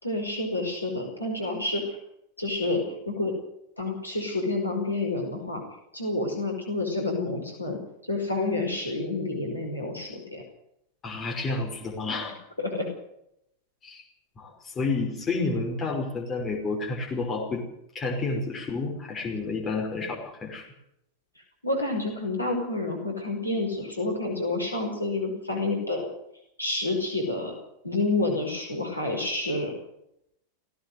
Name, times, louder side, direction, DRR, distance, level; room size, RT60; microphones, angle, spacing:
voice 1, 0.0-2.0 2.4-3.3 3.8-5.6 5.9-7.8 8.1-10.4 12.6-12.9 21.6-26.1 26.6-27.5 27.8-29.8, left 2 dB, 85° left, 1 dB, 5.5 m, -29 dB
voice 2, 11.0-12.3 13.8-14.0 14.4-17.6 17.9-20.6, left 3 dB, 25° left, 0 dB, 5.4 m, -30 dB
18.5 x 17.5 x 8.1 m, 0.79 s
figure-of-eight pair, 90°, 0 cm